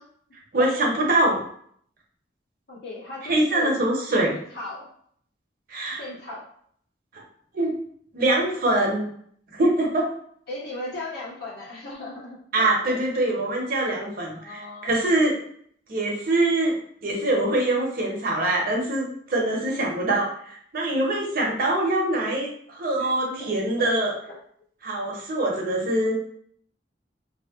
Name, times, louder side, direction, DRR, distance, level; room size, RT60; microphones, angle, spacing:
voice 1, 0.5-1.4 3.3-4.3 5.7-6.0 7.1-7.2 7.5-7.8 8.1-9.1 9.5-10.1 12.5-15.4 15.9-16.7 17.0-24.1 24.8-26.1, right 2 dB, 55° right, -1 dB, 0.7 m, -24 dB
voice 2, 2.7-3.7 4.1-4.9 6.0-6.4 10.5-13.0 14.3-14.9 23.0-23.9 24.3-24.4, left 2 dB, 60° left, -6 dB, 1.2 m, -37 dB
2.7 x 2.0 x 3.4 m, 0.63 s
head